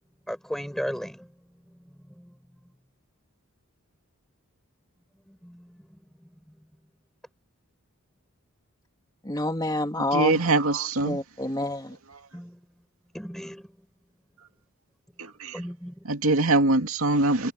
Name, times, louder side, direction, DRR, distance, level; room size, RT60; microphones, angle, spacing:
voice 1, 0.3-2.4 5.3-6.7 10.3-10.4 12.3-12.6 13.1-13.7 15.5-16.0, equal, ahead, 4.8 m, -37 dB
voice 2, 9.2-10.4 11.0-12.0, left 1 dB, 20° left, 2.8 m, -28 dB
voice 3, 10.0-11.2 15.2-15.6 16.1-17.5, right 2 dB, 75° right, 2.5 m, -23 dB
head